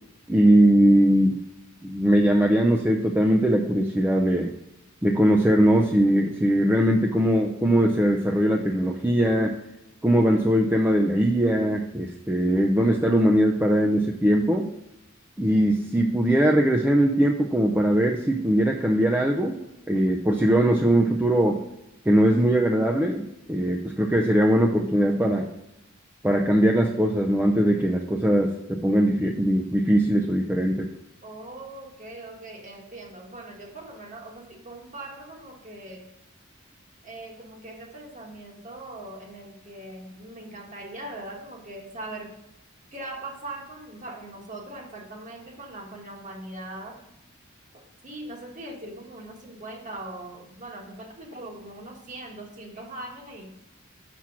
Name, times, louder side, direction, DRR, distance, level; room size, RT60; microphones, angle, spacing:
voice 1, 0.3-1.4 1.8-4.5 5.0-9.5 10.0-14.7 15.4-19.6 19.9-21.6 22.1-23.2 23.5-25.5 26.2-30.9, equal, 10° right, 1 dB, 0.5 m, -21 dB
voice 2, 31.2-36.1 37.0-42.4 42.9-47.0 47.7-53.6, right 2 dB, 40° right, 1 dB, 1.5 m, -40 dB
6.2 x 6.0 x 5.7 m, 0.90 s
head